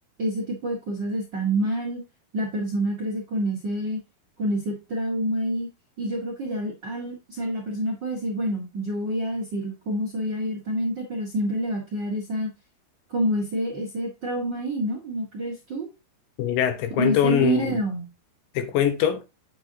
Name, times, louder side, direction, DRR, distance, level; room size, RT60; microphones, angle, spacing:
voice 1, 0.2-2.0 2.3-4.0 4.4-5.7 6.0-12.5 13.1-15.9 17.0-18.1, right 1 dB, 65° right, 1.1 m, -27 dB
voice 2, 16.4-17.7 18.6-19.2, left 10 dB, 70° left, 2.4 m, -23 dB
8.0 x 7.8 x 2.8 m
omnidirectional pair, 4.7 m